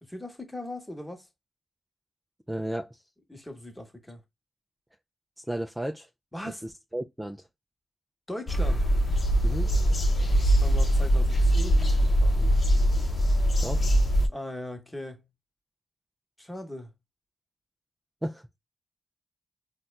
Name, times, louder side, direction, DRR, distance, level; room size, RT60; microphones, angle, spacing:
voice 1, 0.0-1.3 3.3-4.2 6.3-6.6 8.3-8.9 10.2-12.6 14.3-15.2 16.4-16.9, left 1 dB, 10° left, 1.1 m, -39 dB
voice 2, 2.5-3.0 5.4-6.1 6.6-7.5 9.4-9.7 13.6-13.8 18.2-18.5, right 1 dB, 10° right, 0.5 m, -34 dB
sound 1, 8.5-14.3, equal, 50° left, 0.8 m, -22 dB
4.1 x 2.2 x 2.2 m
cardioid pair, 75°, 0 cm